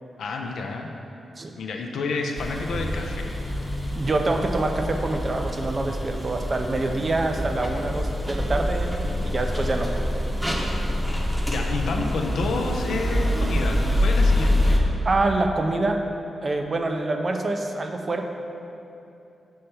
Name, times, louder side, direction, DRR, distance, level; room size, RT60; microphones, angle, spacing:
voice 1, 0.2-0.9 1.6-3.4 9.0-9.4 11.0-14.8, left 3 dB, 80° left, 2 dB, 0.4 m, -30 dB
sound 1, 2.4-14.8, left 1 dB, 10° right, 0.8 m, -26 dB
voice 2, 3.9-9.9 15.0-16.0 16.4-18.2, right 2 dB, 40° right, 4 dB, 0.5 m, -26 dB
5.4 x 3.3 x 5.6 m, 2.7 s
cardioid pair, 65°, 0 cm